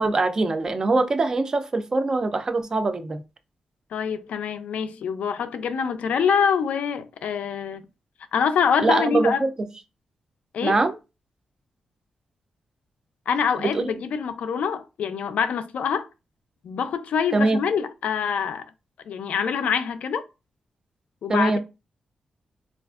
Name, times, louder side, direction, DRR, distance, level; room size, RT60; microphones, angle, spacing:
voice 1, 0.0-3.2 8.8-9.7 10.6-11.0 13.7-13.8 17.3-17.6 21.3-21.6, right 3 dB, 30° right, 0.4 m, -23 dB
voice 2, 3.9-7.8 8.3-9.5 10.5-10.8 13.3-16.1 16.6-18.6 19.1-20.2 21.2-21.6, left 7 dB, 80° left, 0.4 m, -25 dB
4.3 x 2.4 x 2.4 m
wide cardioid pair, 165°, 2 cm